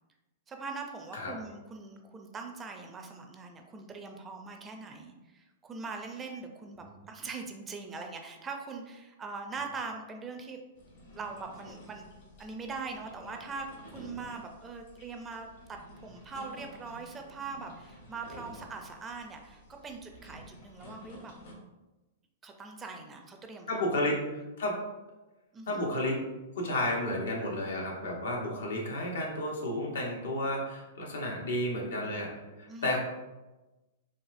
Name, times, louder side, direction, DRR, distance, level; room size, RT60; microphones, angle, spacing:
voice 1, 0.5-10.6 11.1-12.1 12.4-21.3 22.4-23.8 25.5-25.8 32.7-33.0, right 4 dB, 20° right, 3 dB, 0.4 m, -42 dB
sound 1, 10.7-21.6, equal, 60° left, 1.3 m, -51 dB
voice 2, 23.7-24.8 25.7-26.2 26.6-32.3 32.6-33.0, left 1 dB, 80° left, -1 dB, 0.9 m, -32 dB
4.0 x 2.6 x 2.5 m, 1.1 s
hypercardioid pair, 130°, 0 cm